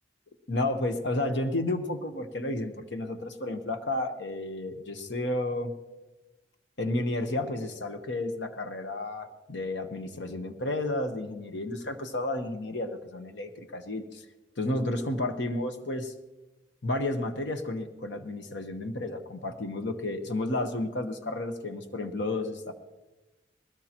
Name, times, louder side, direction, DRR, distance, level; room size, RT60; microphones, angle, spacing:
voice 1, 0.5-5.7 6.8-14.2 14.6-16.1 16.8-22.7, left 2 dB, 75° left, 7 dB, 1.1 m, -32 dB
20.5 x 17.5 x 3.0 m, 1.1 s
head